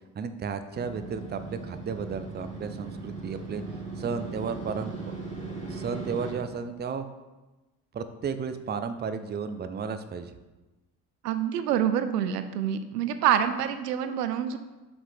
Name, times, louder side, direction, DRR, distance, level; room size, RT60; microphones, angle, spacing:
voice 1, 0.1-3.6 4.0-5.1 5.5-7.1 7.9-10.3, right 6 dB, 20° right, 10 dB, 0.6 m, -33 dB
Motorcycle, 0.7-6.3, right 3 dB, 15° left, 2.4 m, -38 dB
voice 2, 11.2-14.6, right 9 dB, 80° right, 10 dB, 0.6 m, -26 dB
7.3 x 6.0 x 3.4 m, 1.1 s
figure-of-eight pair, 45°, 47 cm